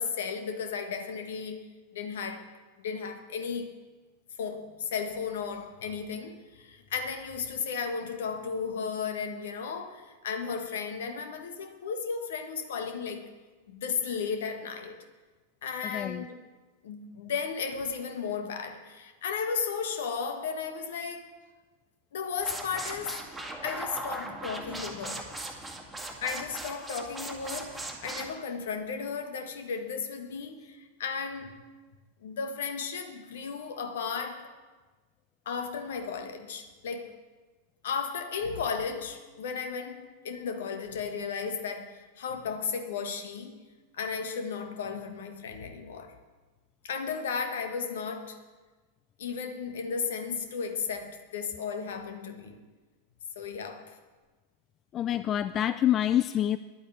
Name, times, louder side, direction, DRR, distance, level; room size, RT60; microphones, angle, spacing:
voice 1, 0.0-2.5 2.8-3.7 4.4-13.3 13.7-15.0 15.6-16.3 16.8-21.3 22.1-23.2 23.6-25.3 26.2-31.5 32.2-34.5 35.4-37.2 37.8-43.6 43.9-46.1 46.8-48.4 49.2-52.6 53.3-54.0, left 6 dB, 60° left, 1.4 m, -34 dB
voice 2, 15.9-16.2 54.9-56.6, left 11 dB, 30° left, 0.3 m, -26 dB
sound 1, 22.4-28.3, right 1 dB, 5° right, 1.9 m, -39 dB
11.0 x 8.6 x 8.1 m
figure-of-eight pair, 90°, 0 cm